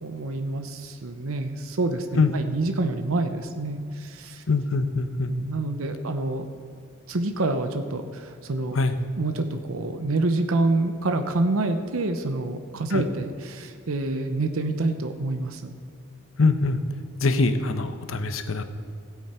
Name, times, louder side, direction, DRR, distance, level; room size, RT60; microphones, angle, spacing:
voice 1, 0.0-4.4 5.3-6.5 7.1-8.8 9.2-15.7, right 2 dB, 90° right, 7 dB, 0.8 m, -27 dB
voice 2, 4.5-5.3 8.7-9.0 12.9-13.0 16.4-16.8 17.2-18.6, left 3 dB, 70° left, 10 dB, 0.8 m, -23 dB
16.0 x 8.3 x 4.4 m, 2.3 s
head